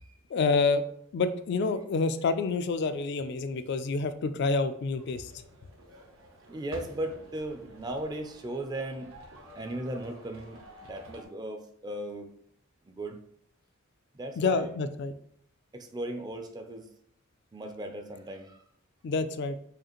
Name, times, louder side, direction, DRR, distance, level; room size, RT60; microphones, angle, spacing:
voice 1, 0.3-0.8 1.1-5.3 14.4-15.1 19.0-19.6, left 4 dB, 55° left, 11 dB, 0.3 m, -28 dB
sound 1, 5.0-11.2, right 1 dB, 70° right, 0.8 m, -50 dB
voice 2, 6.5-9.2 9.5-12.3 12.9-13.2 14.1-14.7 15.7-16.9 17.5-18.6, right 1 dB, 20° right, 5 dB, 0.4 m, -37 dB
4.9 x 2.5 x 2.9 m, 0.68 s
head